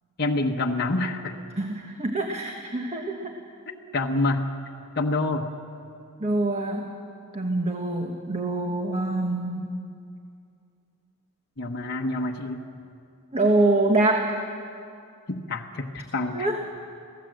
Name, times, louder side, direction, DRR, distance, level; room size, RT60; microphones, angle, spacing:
voice 1, 0.2-1.3 3.7-4.5 5.0-5.5 11.6-12.6 15.3-16.5, left 2 dB, 50° left, 0 dB, 1.1 m, -27 dB
voice 2, 1.6-3.3 6.2-6.9 7.3-9.7 13.3-14.4 16.3-16.6, right 2 dB, 30° right, 2 dB, 1.3 m, -25 dB
26.5 x 17.0 x 7.7 m, 2.5 s
head